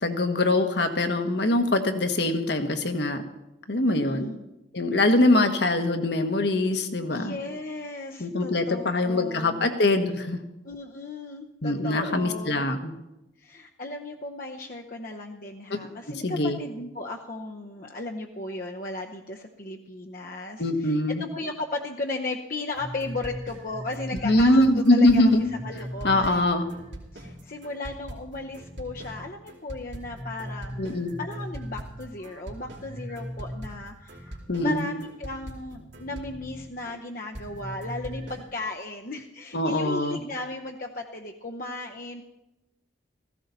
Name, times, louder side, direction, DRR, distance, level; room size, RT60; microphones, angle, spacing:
voice 1, 0.0-3.2 3.7-4.3 4.7-7.4 8.2-10.4 11.6-12.9 15.7-15.8 16.2-16.6 20.6-21.2 24.2-25.5 26.0-26.7 30.8-31.2 34.5-34.9 39.5-40.2, left 2 dB, 65° left, 7 dB, 1.4 m, -23 dB
voice 2, 3.9-4.4 7.1-9.7 10.6-12.7 13.4-25.3 25.6-26.5 27.1-30.9 31.2-42.2, left 2 dB, 45° left, 1 dB, 0.8 m, -36 dB
sound 1, 22.7-37.0 37.3-38.5, equal, 75° right, 2.9 m, -39 dB
16.0 x 15.5 x 4.1 m, 0.95 s
head